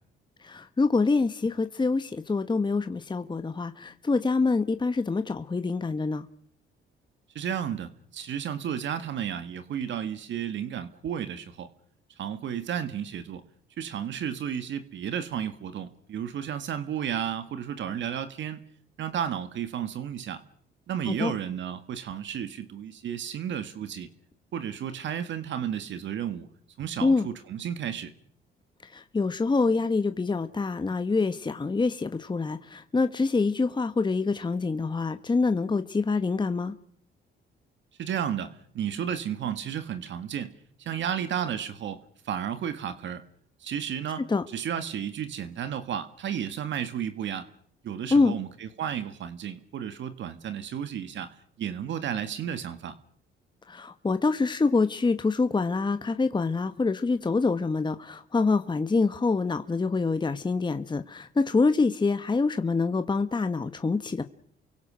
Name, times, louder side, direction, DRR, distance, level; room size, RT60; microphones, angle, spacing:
voice 1, 0.4-6.2 21.1-21.3 27.0-27.3 28.8-36.7 44.3-44.4 48.1-48.3 53.7-64.2, left 4 dB, 25° left, 1.2 m, -26 dB
voice 2, 7.4-11.7 12.2-13.4 13.8-18.6 19.0-20.4 20.9-24.1 24.5-26.5 26.8-28.1 38.0-40.5 40.8-43.2 43.6-47.5 47.8-53.0, right 9 dB, 70° right, 1.8 m, -33 dB
29.0 x 24.0 x 6.3 m
cardioid pair, 90°, 20 cm